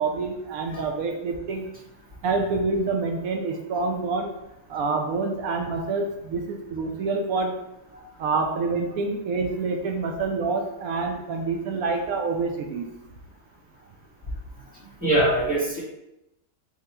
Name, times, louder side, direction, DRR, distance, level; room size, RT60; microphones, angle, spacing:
voice 1, 0.0-1.7 2.2-4.4 4.7-7.5 8.2-12.9, right 4 dB, 65° right, 3 dB, 0.9 m, -27 dB
voice 2, 15.0-15.8, right 1 dB, 5° right, -7 dB, 0.8 m, -22 dB
3.7 x 2.9 x 4.3 m, 0.89 s
omnidirectional pair, 1.9 m